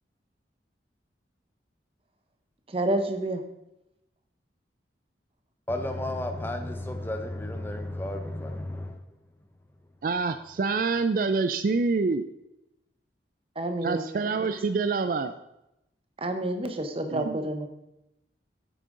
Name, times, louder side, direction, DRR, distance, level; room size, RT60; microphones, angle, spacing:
voice 1, 2.7-3.4 13.6-14.1 14.4-14.6 16.2-17.7, right 1 dB, 30° right, 0.9 m, -29 dB
voice 2, 5.7-9.2, left 1 dB, 10° left, 0.7 m, -33 dB
voice 3, 10.0-12.2 13.8-15.3 17.1-17.4, right 4 dB, 50° right, 0.3 m, -26 dB
9.1 x 8.4 x 3.7 m
head